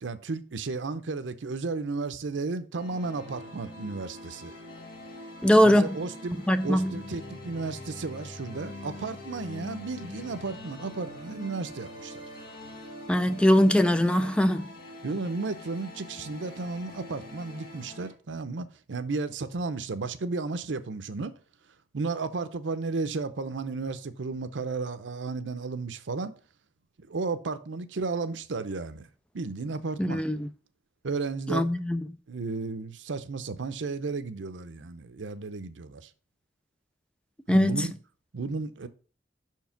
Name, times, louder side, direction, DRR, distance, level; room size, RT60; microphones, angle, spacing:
voice 1, 0.0-4.5 5.6-6.4 6.6-12.2 15.0-21.3 21.9-26.3 27.0-29.1 29.3-30.2 31.0-31.7 32.3-36.1 37.5-37.9 38.3-38.9, right 3 dB, 90° right, 0.6 m, -33 dB
sound 1, 2.7-18.1, left 1 dB, 50° left, 1.5 m, -44 dB
voice 2, 5.4-6.0 6.5-7.0 13.1-14.7 30.0-30.5 31.5-32.0 37.5-37.9, equal, 5° left, 0.4 m, -21 dB
5.7 x 4.6 x 5.7 m
head